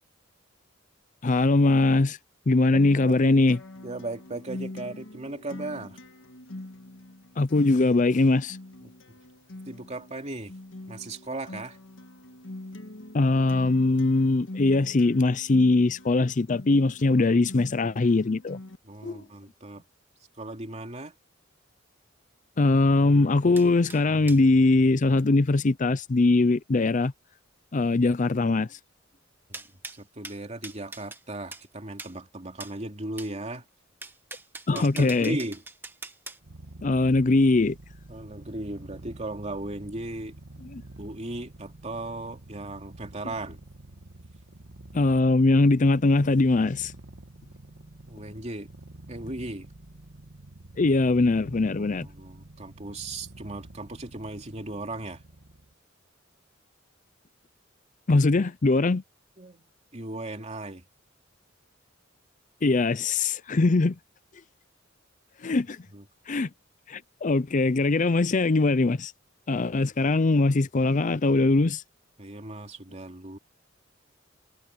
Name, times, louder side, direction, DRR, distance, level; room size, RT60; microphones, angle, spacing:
voice 1, 1.2-2.2 2.5-3.6 7.4-8.6 13.1-18.6 19.0-19.2 22.6-27.1 27.7-28.8 34.7-35.4 36.8-37.8 40.6-40.8 44.9-46.9 50.8-52.1 58.1-59.0 62.6-64.0 65.4-65.9 66.3-66.5 66.9-69.1 69.5-71.8, left 3 dB, 40° left, 0.5 m, -21 dB
voice 2, 2.5-3.2 3.8-6.0 8.8-8.9 9.7-10.5 10.9-11.8 17.2-17.4 18.8-19.8 20.4-21.1 29.5-29.6 30.0-33.6 34.7-35.6 38.1-40.3 41.0-43.6 48.0-48.7 49.1-49.7 51.8-55.2 58.3-58.4 59.4-59.7 59.9-60.8 65.9-66.0 72.2-73.4, right 2 dB, 35° right, 2.9 m, -37 dB
Acoustic guitar, 2.7-18.8, left 1 dB, 80° left, 1.7 m, -44 dB
sound 1, 23.6-24.4 29.5-31.2 31.5-31.7 32.0-32.2 32.6-32.8 33.2-33.3 34.0-36.4, right 3 dB, 10° right, 1.7 m, -42 dB
Purr, 36.4-55.7, right 1 dB, 70° right, 1.6 m, -48 dB
head